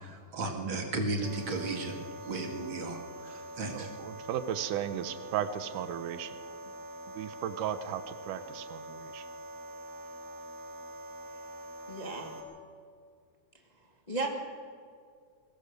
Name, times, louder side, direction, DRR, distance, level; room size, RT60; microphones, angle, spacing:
voice 1, 0.0-2.0 2.2-3.9, right 2 dB, 40° right, 2 dB, 2.8 m, -35 dB
sound 1, 1.2-12.4, right 1 dB, 60° right, 4.9 m, -45 dB
voice 2, 3.7-6.4 7.1-9.3, right 10 dB, 90° right, 11 dB, 2.5 m, -35 dB
voice 3, 11.9-12.3 14.1-14.3, right 3 dB, 20° left, 1 dB, 1.3 m, -34 dB
22.5 x 18.5 x 6.8 m, 2.2 s
omnidirectional pair, 3.5 m